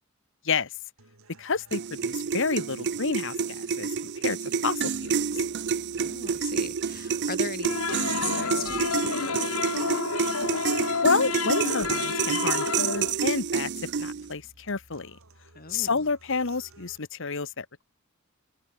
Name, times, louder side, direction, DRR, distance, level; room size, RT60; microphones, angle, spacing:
sound 1, 1.0-17.0, right 2 dB, 85° right, 4.6 m, -56 dB
voice 1, 1.4-3.9 4.2-4.4 4.6-5.1 11.0-13.7 14.0-15.2 15.7-17.8, left 4 dB, 65° left, 1.4 m, -29 dB
sound 2, 1.7-14.3, right 6 dB, 55° right, 0.5 m, -29 dB
voice 2, 6.0-10.1 15.5-16.1, left 4 dB, 45° left, 4.3 m, -39 dB
sound 3, 7.6-13.1, left 5 dB, 80° left, 1.4 m, -30 dB
open air
head